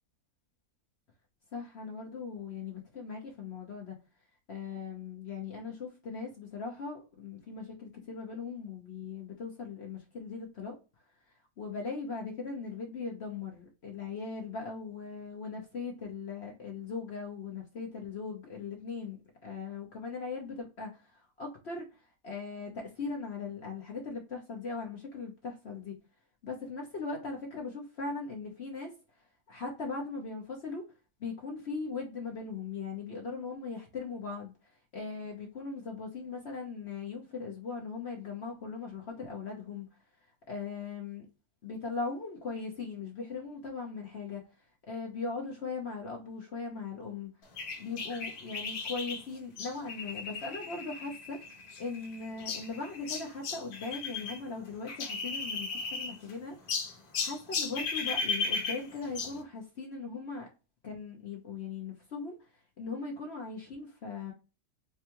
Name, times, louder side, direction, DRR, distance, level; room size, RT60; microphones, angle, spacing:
voice 1, 1.5-4.0 4.5-10.8 11.6-21.9 22.2-26.0 26.4-28.9 29.5-30.9 31.2-34.5 34.9-39.9 40.5-41.3 41.6-44.4 44.9-47.3 47.8-56.6 57.2-60.5 60.8-62.4 62.8-64.3, left 4 dB, 50° left, 1.0 m, -39 dB
sound 1, 47.6-54.4 54.6-56.3 56.7-59.4, left 4 dB, 80° left, 1.4 m, -36 dB
4.4 x 2.3 x 2.9 m
omnidirectional pair, 1.6 m